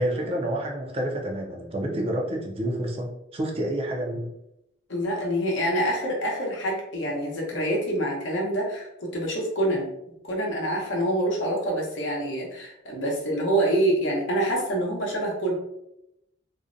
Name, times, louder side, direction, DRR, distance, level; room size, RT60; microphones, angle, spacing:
voice 1, 0.0-4.3, right 1 dB, 30° right, 0 dB, 0.4 m, -29 dB
voice 2, 4.9-9.9 10.2-15.5, right 1 dB, 70° left, -2 dB, 0.7 m, -26 dB
2.5 x 2.0 x 2.5 m, 0.83 s
head